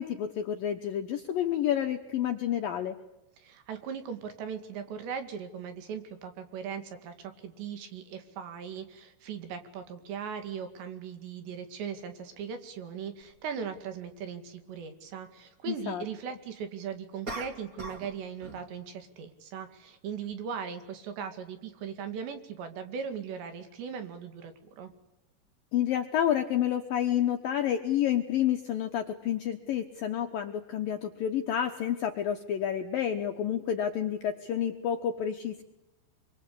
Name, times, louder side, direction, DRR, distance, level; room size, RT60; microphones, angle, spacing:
voice 1, 0.0-3.0 15.7-16.0 25.7-35.6, left 10 dB, 70° left, 6 dB, 2.2 m, -29 dB
voice 2, 3.4-24.9, right 7 dB, 65° right, 8 dB, 4.2 m, -39 dB
sound 1, 13.2-13.3 17.3-18.1 18.4-18.7, right 2 dB, 25° right, 2.3 m, -40 dB
25.5 x 24.5 x 8.5 m, 0.93 s
omnidirectional pair, 5.5 m